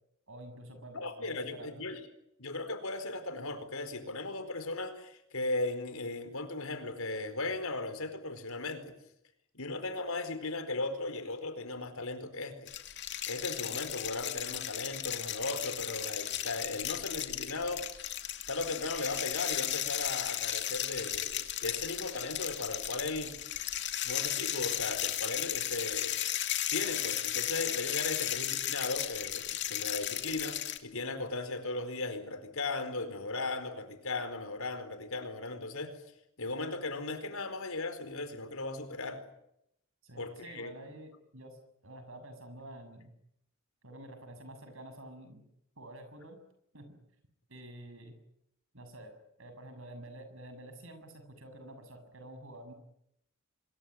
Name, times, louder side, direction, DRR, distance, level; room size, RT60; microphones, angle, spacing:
voice 1, 0.3-1.8 28.2-28.4 40.0-43.1 43.8-45.4 45.8-46.4 46.7-47.0 47.5-48.2 48.7-52.7, right 1 dB, 65° right, 9 dB, 6.9 m, -49 dB
voice 2, 0.9-2.0 2.4-8.9 9.5-12.7 13.3-17.9 18.5-23.3 24.0-26.4 26.7-36.0 36.4-39.2 40.2-40.7, left 2 dB, 75° left, 9 dB, 4.6 m, -37 dB
sound 1, 12.7-30.8, left 12 dB, 55° left, 2.5 m, -35 dB
25.5 x 22.5 x 9.4 m, 0.78 s
head